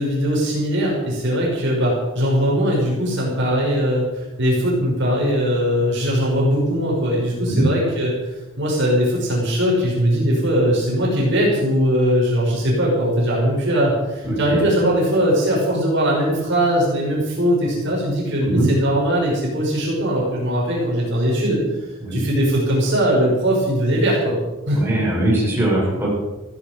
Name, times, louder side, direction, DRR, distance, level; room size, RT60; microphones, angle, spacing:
voice 1, 0.0-8.1 8.6-21.6 22.1-24.4 24.7-24.8, equal, 55° right, -3 dB, 5.4 m, -20 dB
voice 2, 24.8-26.1, right 1 dB, 10° right, -6 dB, 7.3 m, -20 dB
16.0 x 15.5 x 5.2 m, 1.1 s
head